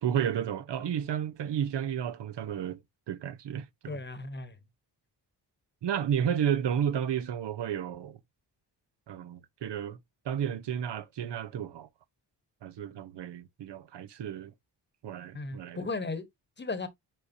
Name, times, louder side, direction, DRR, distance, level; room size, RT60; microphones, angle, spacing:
voice 1, 0.0-2.8 3.1-4.0 5.8-8.2 9.1-10.0 10.2-11.9 12.6-14.5 15.0-15.9, right 9 dB, 80° right, 0.9 m, -32 dB
voice 2, 3.8-4.6 15.3-16.3 16.6-16.9, left 3 dB, 25° left, 1.1 m, -35 dB
7.7 x 5.0 x 2.7 m
wide cardioid pair, 145°, 42 cm